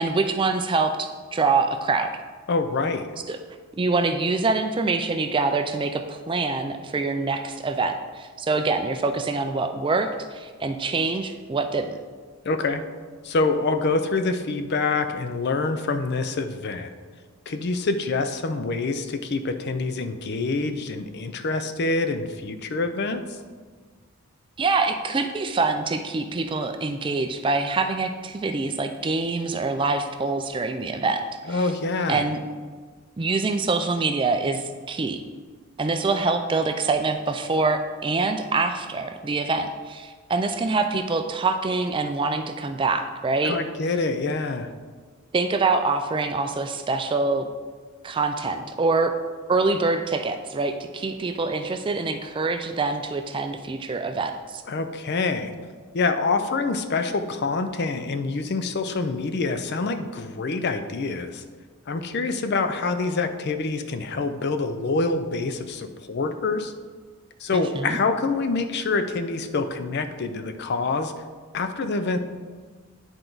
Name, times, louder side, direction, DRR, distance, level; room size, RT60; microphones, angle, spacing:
voice 1, 0.0-2.1 3.3-3.4 3.8-12.0 24.6-31.2 31.5-31.7 32.1-32.4 33.2-35.2 35.8-43.6 45.3-47.5 48.0-49.1 49.5-54.6 67.5-68.0, right 3 dB, 20° right, 7 dB, 0.3 m, -25 dB
voice 2, 2.5-3.1 12.4-12.8 13.2-16.9 17.5-23.2 31.5-32.2 43.4-44.7 54.7-55.5 55.9-61.4 61.9-66.7 67.4-71.1 71.5-72.2, left 3 dB, 50° left, 8 dB, 0.5 m, -26 dB
9.8 x 4.5 x 3.9 m, 1.5 s
head